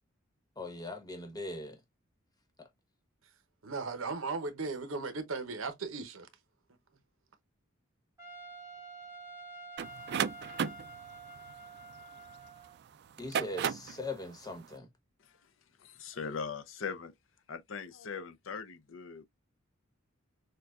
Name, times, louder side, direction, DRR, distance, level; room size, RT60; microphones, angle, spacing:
voice 1, 0.6-1.8 2.6-2.7 13.2-14.9, left 2 dB, 20° left, 1.1 m, -40 dB
voice 2, 3.6-6.3, right 4 dB, 75° right, 0.9 m, -36 dB
Trumpet, 8.2-12.8, right 3 dB, 15° right, 1.4 m, -48 dB
sound 1, 9.8-12.5 13.1-14.0, right 8 dB, 55° right, 0.4 m, -34 dB
voice 3, 15.8-17.1 17.5-19.2, left 5 dB, 70° left, 0.6 m, -40 dB
6.6 x 2.3 x 2.3 m
head